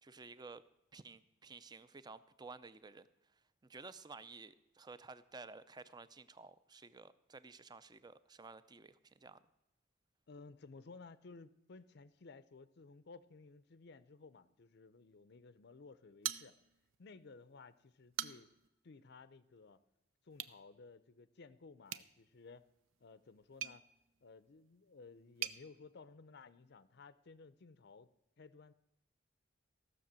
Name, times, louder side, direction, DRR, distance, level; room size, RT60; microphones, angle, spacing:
voice 1, 0.0-0.6 0.9-3.1 3.7-9.4, right 4 dB, 20° right, 14 dB, 0.5 m, -53 dB
voice 2, 10.3-16.6 17.0-18.5 18.8-19.8 20.2-22.7 23.0-23.8 24.2-28.1 28.4-28.7, left 4 dB, 55° left, 15 dB, 0.5 m, -57 dB
sound 1, 16.2-17.0 17.4-17.5 17.9-18.7 20.3-20.6 21.9-25.6, right 10 dB, 80° right, 0.6 m, -45 dB
15.5 x 6.5 x 7.4 m, 0.90 s
head